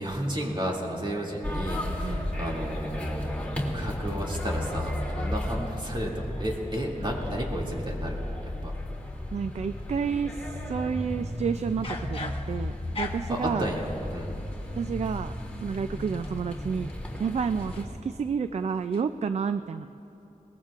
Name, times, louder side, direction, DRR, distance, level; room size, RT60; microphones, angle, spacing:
voice 1, 0.0-8.2 8.6-8.7 13.3-14.3, equal, 35° right, -2 dB, 2.5 m, -32 dB
sound 1, 1.4-17.8, left 1 dB, 10° left, 2.7 m, -34 dB
voice 2, 2.0-2.3 9.3-13.7 14.7-16.9 17.2-19.9, right 6 dB, 55° right, 11 dB, 0.4 m, -30 dB
sound 2, 9.8-10.4 11.6-13.5 14.5-18.3 18.6-19.0, left 2 dB, 45° left, 1.2 m, -42 dB
22.0 x 20.0 x 2.5 m, 2.9 s
wide cardioid pair, 95°, 13 cm